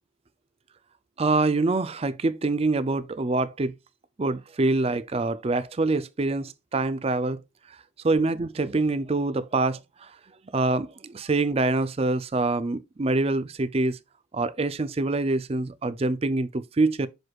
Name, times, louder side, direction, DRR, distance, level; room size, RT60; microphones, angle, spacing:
voice 1, 1.2-3.7 4.2-7.4 8.0-10.1 10.5-14.0 14.3-17.1, right 2 dB, 30° right, 0.5 m, -25 dB
7.8 x 6.2 x 2.4 m
head